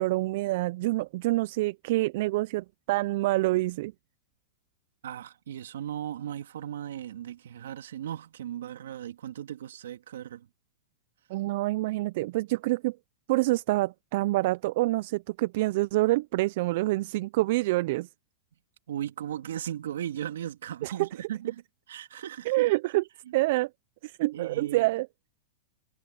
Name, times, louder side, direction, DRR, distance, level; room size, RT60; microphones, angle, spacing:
voice 1, 0.0-3.9 11.3-13.0 13.3-18.1 20.8-21.1 22.5-23.0 23.3-23.7 24.0-25.1, right 19 dB, 60° right, 0.4 m, -27 dB
voice 2, 5.0-10.5 18.9-21.6 21.9-22.7 24.3-24.9, right 10 dB, 80° right, 3.0 m, -37 dB
hypercardioid pair, 120°, 0 cm